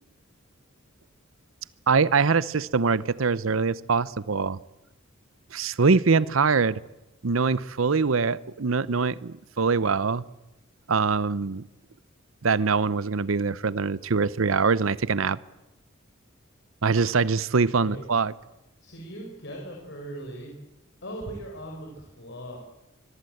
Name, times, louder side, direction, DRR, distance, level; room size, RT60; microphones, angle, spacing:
voice 1, 1.9-4.6 5.5-6.8 7.2-10.2 10.9-11.6 12.4-15.4 16.8-18.3, right 4 dB, 80° right, 19 dB, 0.8 m, -23 dB
voice 2, 18.8-20.5 21.0-22.6, right 1 dB, 60° left, 0 dB, 5.2 m, -39 dB
24.0 x 22.5 x 7.9 m, 1.0 s
head